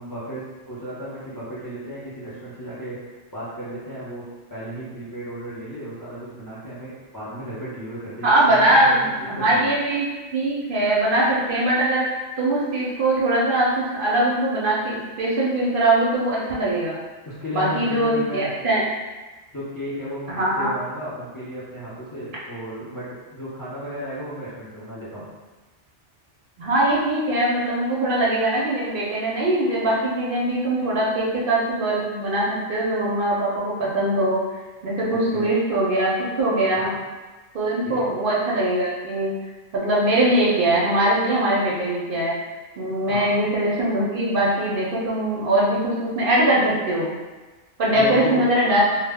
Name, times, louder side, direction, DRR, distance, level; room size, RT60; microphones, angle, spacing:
voice 1, 0.0-4.2 4.5-9.7 17.3-18.6 19.5-25.3 35.3-35.5 36.7-36.9 37.8-38.1 43.1-43.3 47.9-48.5, equal, 35° left, -9 dB, 0.3 m, -34 dB
voice 2, 8.2-10.1 10.3-17.0 17.5-18.9 20.3-20.7 26.6-34.4 34.8-36.1 36.4-36.9 37.5-39.3 39.7-42.3 42.8-47.1 47.8-48.8, right 1 dB, 60° right, -6 dB, 0.6 m, -21 dB
2.0 x 2.0 x 3.4 m, 1.2 s
omnidirectional pair, 1.2 m